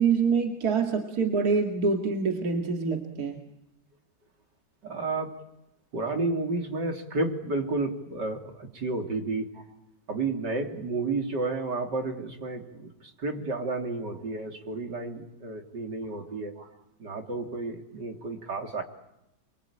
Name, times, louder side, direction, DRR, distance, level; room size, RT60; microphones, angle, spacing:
voice 1, 0.0-3.4, right 5 dB, 55° right, 4 dB, 2.6 m, -25 dB
voice 2, 4.8-5.3 5.9-9.5 10.1-16.5 17.0-18.8, right 3 dB, 75° right, 4 dB, 3.8 m, -31 dB
28.5 x 24.0 x 8.8 m, 0.85 s
omnidirectional pair, 1.9 m